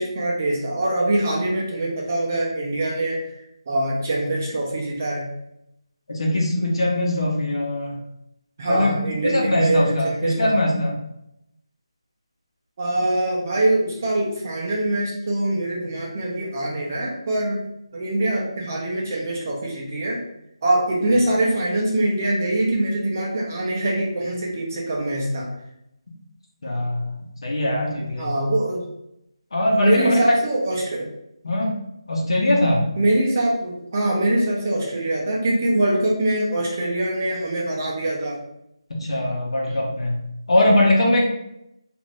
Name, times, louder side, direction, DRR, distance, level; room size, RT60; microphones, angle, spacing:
voice 1, 0.0-3.3 3.7-5.3 8.6-10.5 12.8-17.6 17.9-20.2 20.6-25.5 28.2-28.9 29.8-31.1 33.0-38.4 40.6-40.7, right 1 dB, 30° right, -3 dB, 0.6 m, -23 dB
voice 2, 6.1-7.9 8.7-8.9 9.2-10.9 26.6-28.3 29.5-30.2 31.4-31.7 32.1-32.9 38.9-40.2 40.5-41.3, left 1 dB, 65° left, -2 dB, 0.9 m, -21 dB
2.6 x 2.5 x 3.2 m, 0.80 s
figure-of-eight pair, 175°, 3 cm